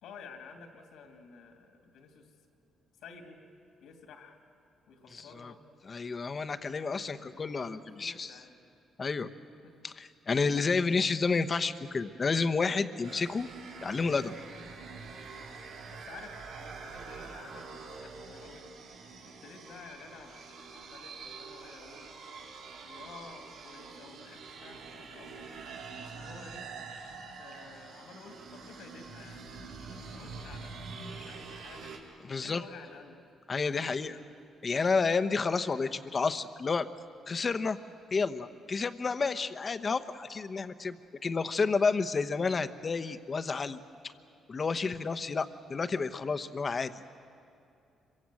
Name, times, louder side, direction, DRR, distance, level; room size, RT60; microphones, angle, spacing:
voice 1, 0.0-2.3 3.0-3.4 3.8-4.4 4.9-5.6 6.8-8.6 9.6-9.7 15.9-18.6 19.4-22.1 22.8-25.4 26.0-26.6 27.4-32.0 32.3-33.2 33.7-34.3, left 5 dB, 85° left, 3 dB, 2.8 m, -52 dB
voice 2, 5.1-5.5 5.9-8.3 9.0-9.3 9.8-13.5 13.8-14.3 32.3-32.6 33.5-34.1 34.6-36.9 37.3-37.8 38.1-41.0 41.2-43.8 44.5-46.9, left 4 dB, 35° left, 10 dB, 1.1 m, -30 dB
sound 1, 13.0-32.0, right 4 dB, 90° right, 4.2 m, -46 dB
26.0 x 23.5 x 7.8 m, 2.6 s
cardioid pair, 90°, 0 cm